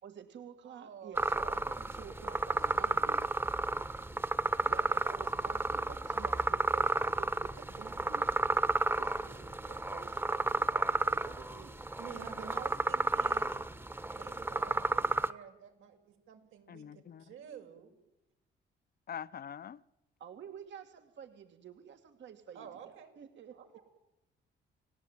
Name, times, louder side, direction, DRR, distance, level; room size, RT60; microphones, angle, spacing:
voice 1, 0.0-3.2 4.6-8.3 9.0-11.7 20.2-23.6, right 8 dB, 65° right, 2.6 m, -50 dB
voice 2, 0.6-1.5 1.8-1.9 2.8-3.0 11.7-13.7 14.1-17.9 22.5-23.1 23.5-23.8, right 8 dB, 80° right, 6.2 m, -50 dB
sound 1, 1.2-15.3, right 2 dB, 10° right, 1.3 m, -32 dB
voice 3, 16.7-17.2 19.1-19.8, left 8 dB, 50° left, 0.9 m, -44 dB
30.0 x 19.5 x 9.4 m
cardioid pair, 90°, 20 cm